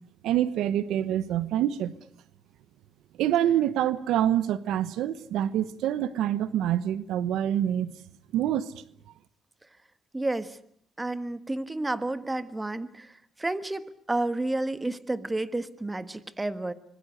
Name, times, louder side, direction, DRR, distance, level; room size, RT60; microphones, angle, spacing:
voice 1, 0.2-1.9 3.2-7.9 8.3-8.7, right 11 dB, 85° right, 1.0 m, -26 dB
voice 2, 10.1-10.6 11.0-13.1 13.4-16.7, right 2 dB, 15° right, 1.5 m, -31 dB
25.5 x 22.0 x 8.0 m
cardioid pair, 90°, 0 cm